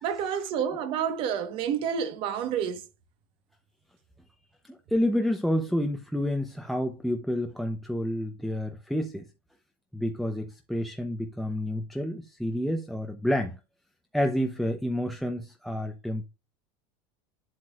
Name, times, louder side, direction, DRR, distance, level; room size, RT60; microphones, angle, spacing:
voice 1, 0.0-2.8, right 8 dB, 45° right, 1.3 m, -29 dB
voice 2, 4.6-9.3 9.9-13.6 14.1-16.2, equal, ahead, 0.7 m, -29 dB
9.5 x 7.7 x 2.4 m
supercardioid pair, 145°, 12 cm